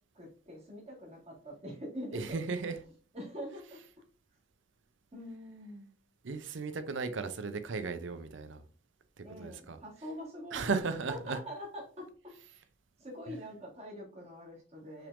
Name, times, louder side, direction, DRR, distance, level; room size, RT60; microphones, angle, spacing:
voice 1, 0.1-2.4 3.1-3.8 5.1-5.9 9.2-10.7 11.1-12.7 13.0-15.1, equal, 30° right, 1.7 m, -44 dB
voice 2, 2.1-2.8 6.2-8.6 9.2-9.8 10.5-11.4, right 4 dB, 65° right, 0.6 m, -35 dB
5.8 x 3.5 x 2.5 m
head